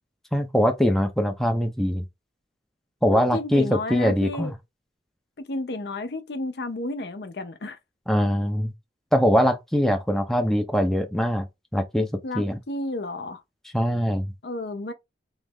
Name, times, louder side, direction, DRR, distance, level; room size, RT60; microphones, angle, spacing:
voice 1, 0.3-2.0 3.0-4.5 8.1-8.7 9.1-11.5 11.7-12.1 12.3-12.6 13.7-14.3, equal, ahead, 0.4 m, -22 dB
voice 2, 3.1-4.5 5.4-7.8 12.2-13.4 14.4-14.9, left 2 dB, 60° left, 0.6 m, -32 dB
3.1 x 2.4 x 3.5 m
head